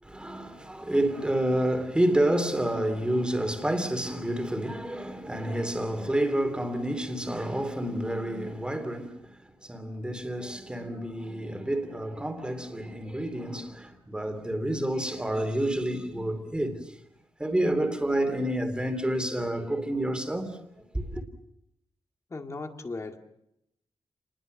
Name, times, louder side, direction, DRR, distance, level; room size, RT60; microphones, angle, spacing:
voice 1, 0.0-17.0 17.4-21.2, right 1 dB, 10° right, 2.9 m, -29 dB
voice 2, 22.3-23.2, left 3 dB, 30° left, 2.2 m, -37 dB
29.5 x 20.5 x 6.6 m
wide cardioid pair, 170°, 10 cm